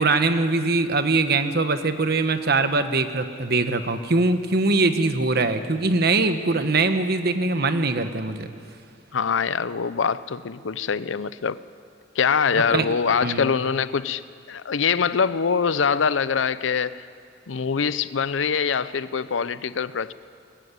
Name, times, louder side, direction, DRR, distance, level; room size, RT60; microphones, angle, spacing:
voice 1, 0.0-8.5 12.7-12.8 13.2-13.5, right 3 dB, 55° right, 9 dB, 1.2 m, -22 dB
voice 2, 9.1-11.6 12.2-14.2 14.5-17.0 17.5-20.1, left 6 dB, 75° left, 16 dB, 0.6 m, -24 dB
20.0 x 15.0 x 9.6 m, 2.4 s
head